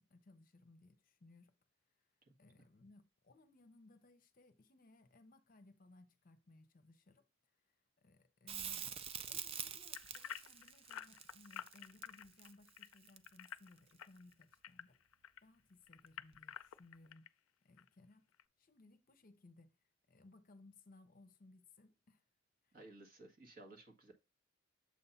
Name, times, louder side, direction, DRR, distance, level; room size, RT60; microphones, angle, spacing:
voice 1, 0.0-1.5 2.0-2.1 2.4-7.3 7.5-15.0 15.4-17.3 17.6-19.8 20.1-22.2 22.6-22.8, left 2 dB, 40° left, 0.7 m, -64 dB
Crackle, 8.5-13.6 16.3-16.4, right 8 dB, 30° right, 0.3 m, -46 dB
sound 1, 9.9-15.4 15.9-17.3 17.8-17.9 18.4-18.5, left 9 dB, 90° left, 0.4 m, -50 dB
voice 2, 22.7-24.1, right 2 dB, 45° right, 1.5 m, -57 dB
7.5 x 2.7 x 5.6 m
head